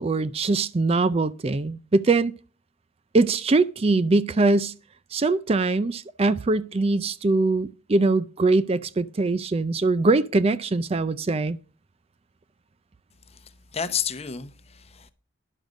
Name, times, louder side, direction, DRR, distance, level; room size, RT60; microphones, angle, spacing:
voice 1, 0.0-2.3 3.1-4.7 5.1-11.6, right 3 dB, 30° right, 0.4 m, -22 dB
voice 2, 13.3-15.1, left 7 dB, 30° left, 0.8 m, -31 dB
10.5 x 6.6 x 6.2 m
head